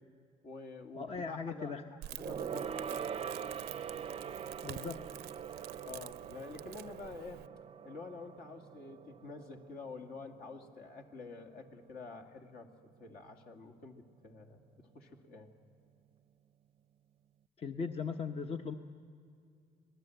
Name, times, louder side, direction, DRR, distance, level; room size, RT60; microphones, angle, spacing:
voice 1, 0.4-3.1 5.8-7.4 7.8-12.7 13.0-15.5, left 4 dB, 60° left, 4 dB, 2.4 m, -48 dB
voice 2, 0.9-1.8 4.6-5.0 17.6-18.8, left 5 dB, 35° left, 6 dB, 0.9 m, -38 dB
Crackle, 2.0-7.5, right 15 dB, 80° right, 0.6 m, -48 dB
Gong, 2.2-12.0 12.3-12.5 12.8-12.9, right 7 dB, 35° right, 0.6 m, -44 dB
25.5 x 19.0 x 7.9 m, 2.3 s
cardioid pair, 110°, 17 cm